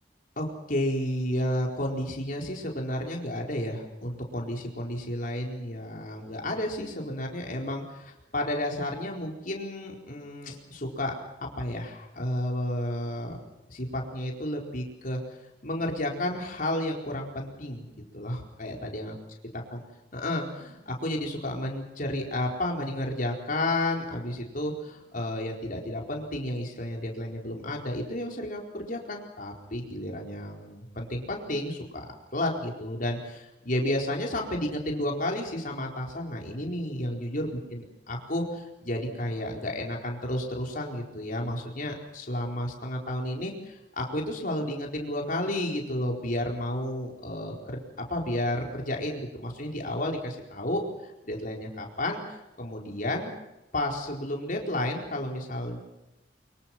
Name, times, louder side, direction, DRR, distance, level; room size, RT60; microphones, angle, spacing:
voice 1, 0.4-11.1 11.6-13.4 13.7-15.2 15.6-17.9 18.1-19.2 19.7-19.8 20.1-32.1 32.3-53.3 53.7-55.8, left 1 dB, 50° left, 0 dB, 4.4 m, -32 dB
24.5 x 23.5 x 6.1 m, 0.93 s
head